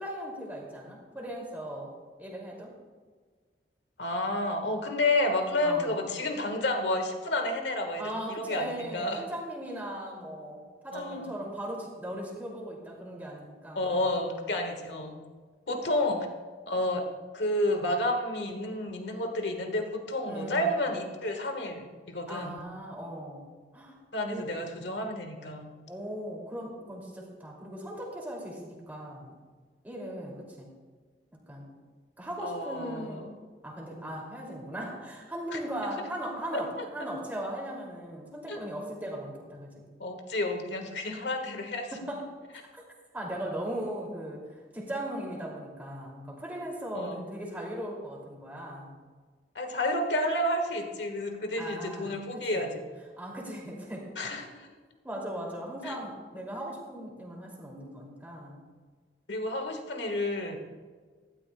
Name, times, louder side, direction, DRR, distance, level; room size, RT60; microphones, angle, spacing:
voice 1, 0.0-1.9 2.2-2.7 5.6-6.0 8.0-14.0 20.3-20.7 22.3-23.5 23.7-24.0 24.3-24.5 25.9-29.3 29.8-30.7 31.5-31.7 32.2-33.3 33.6-39.9 41.4-41.5 41.9-42.3 42.7-42.8 43.1-44.5 44.7-49.0 51.6-52.6 53.2-54.1 55.0-58.6, right 1 dB, 10° right, -2 dB, 2.5 m, -38 dB
voice 2, 4.0-9.3 10.9-11.3 13.7-15.2 15.7-16.3 16.7-17.1 17.3-22.6 24.1-25.7 32.4-33.3 35.5-35.6 36.5-37.1 38.5-38.6 40.0-41.9 46.9-47.2 49.5-52.7 54.2-54.7 55.8-56.0 59.3-60.6, left 1 dB, 80° left, 4 dB, 1.5 m, -30 dB
15.5 x 12.0 x 2.2 m, 1.5 s
head